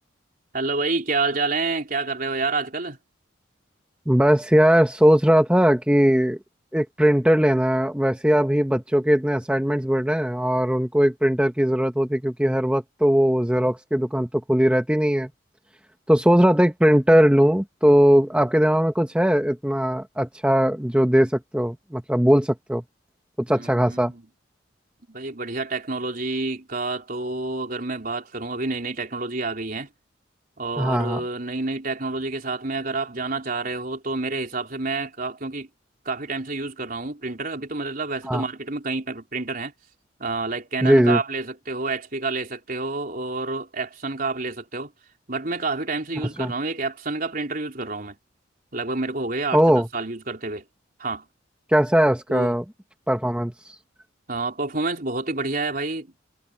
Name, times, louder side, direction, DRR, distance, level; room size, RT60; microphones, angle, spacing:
voice 1, 0.5-3.0 23.5-24.2 25.1-29.9 30.6-35.7 36.1-39.7 40.2-44.9 45.3-48.2 48.7-50.6 51.0-51.3 52.3-52.5 54.3-56.1, right 3 dB, 50° right, 4.1 m, -28 dB
voice 2, 4.1-6.4 6.7-15.3 16.1-22.8 23.4-24.1 30.8-31.2 38.3-38.4 40.8-41.2 46.2-46.5 49.5-49.9 51.7-52.6 53.1-53.8, equal, 5° right, 1.0 m, -19 dB
head